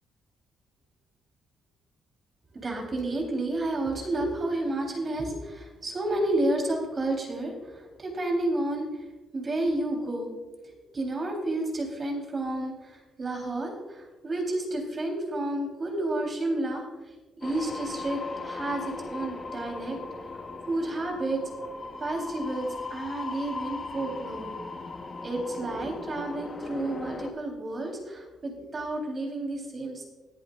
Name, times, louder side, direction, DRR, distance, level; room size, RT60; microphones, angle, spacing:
voice 1, 2.6-9.0 9.3-10.3 10.6-16.8 17.4-20.0 20.3-20.4 20.7-21.4 22.0-24.5 25.2-30.1, right 1 dB, 35° right, 1 dB, 3.9 m, -31 dB
sound 1, 17.4-27.3, left 3 dB, 35° left, 1.3 m, -38 dB
19.0 x 11.0 x 2.6 m, 1.2 s
cardioid pair, 90°, 0 cm